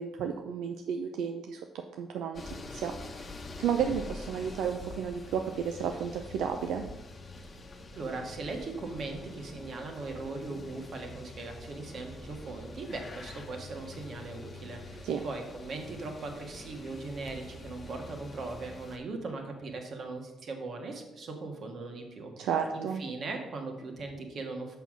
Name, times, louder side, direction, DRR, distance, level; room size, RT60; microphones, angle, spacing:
voice 1, 0.0-1.6 2.0-2.9 3.6-6.8 15.0-15.2 22.4-23.0, right 7 dB, 85° right, 5 dB, 0.5 m, -32 dB
sound 1, 2.3-19.0, left 2 dB, 35° left, 1.0 m, -46 dB
voice 2, 7.9-24.8, right 3 dB, 55° right, 3 dB, 1.6 m, -39 dB
5.9 x 5.8 x 6.0 m, 0.98 s
cardioid pair, 90°, 0 cm